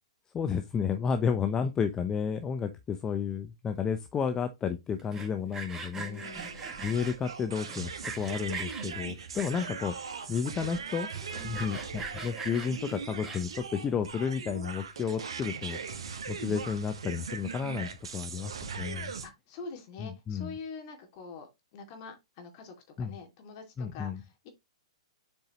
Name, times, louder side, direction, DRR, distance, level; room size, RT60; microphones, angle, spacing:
voice 1, 0.3-6.2 6.8-7.9 8.2-9.9 10.3-11.1 11.4-15.8 16.3-18.5 18.8-19.1 20.0-20.5 23.0-23.2 23.8-24.2, left 6 dB, 20° left, 0.6 m, -32 dB
Sawing, 5.0-7.2 7.7-8.9 9.3-9.9 10.4-10.5 10.7-10.8 11.2-13.7, right 4 dB, 15° right, 1.6 m, -41 dB
voice 2, 6.0-6.6 11.3-11.6 19.2-24.5, left 4 dB, 45° left, 2.4 m, -45 dB
sound 1, 6.2-19.3, right 6 dB, 70° right, 1.3 m, -40 dB
7.4 x 4.7 x 3.0 m
hypercardioid pair, 120°, 3 cm